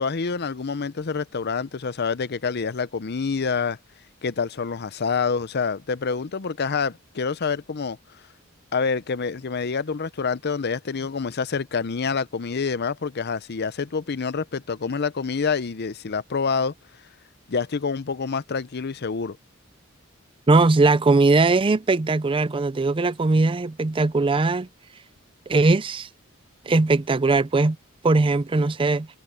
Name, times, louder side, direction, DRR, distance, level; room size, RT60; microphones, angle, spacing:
voice 1, 0.0-3.8 4.2-8.0 8.7-16.7 17.5-19.4, left 5 dB, 50° left, 0.6 m, -27 dB
voice 2, 20.5-24.7 25.5-26.1 26.7-27.8 28.0-29.1, right 3 dB, 25° right, 0.5 m, -20 dB
head